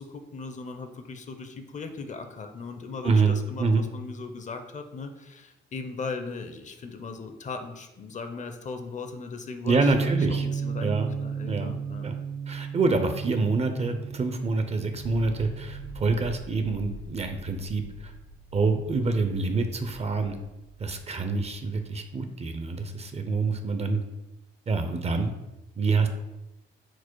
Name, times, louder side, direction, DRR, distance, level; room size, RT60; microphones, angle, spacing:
voice 1, 0.0-12.1, left 4 dB, 40° left, 7 dB, 0.5 m, -38 dB
voice 2, 3.0-3.8 9.6-10.5 10.8-11.1 11.4-11.8 12.0-12.1 12.5-18.1 18.5-20.4 20.8-24.0 24.7-25.3 25.8-26.1, right 3 dB, 35° right, 7 dB, 0.5 m, -26 dB
Bass guitar, 9.9-16.1, right 6 dB, 60° right, 0.8 m, -33 dB
sound 1, 14.9-22.5, right 1 dB, 90° left, 1.4 m, -45 dB
4.5 x 2.1 x 4.4 m, 0.95 s
cardioid pair, 90°, 20 cm